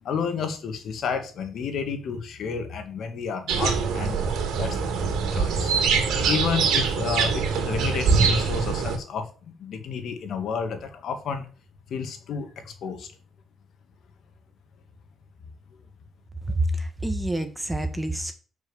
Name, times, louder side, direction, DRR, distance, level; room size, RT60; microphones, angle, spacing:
voice 1, 0.0-4.2 4.6-4.8 5.3-11.5 11.9-13.1, left 6 dB, 65° left, 6 dB, 2.2 m, -31 dB
sound 1, 3.5-9.0, right 5 dB, 85° right, 2.4 m, -23 dB
voice 2, 16.5-18.3, right 1 dB, 10° right, 8 dB, 1.7 m, -27 dB
7.2 x 6.1 x 7.2 m, 0.38 s
cardioid pair, 90°, 0 cm